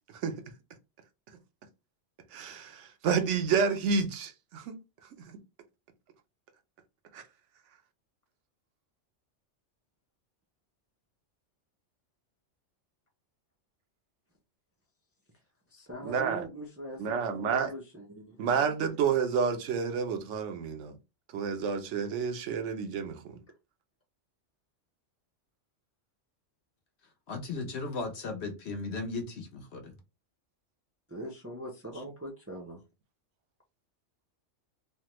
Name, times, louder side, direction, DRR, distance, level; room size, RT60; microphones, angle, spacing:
voice 1, 2.3-4.8 7.1-7.2 16.0-16.4 17.0-17.7 18.4-20.9 21.3-23.4, right 6 dB, 75° right, 0.9 m, -29 dB
voice 2, 15.7-18.4 31.1-32.8, right 1 dB, 20° right, 0.4 m, -42 dB
voice 3, 27.3-29.9, left 3 dB, 65° left, 1.1 m, -36 dB
3.3 x 2.1 x 2.9 m
omnidirectional pair, 1.3 m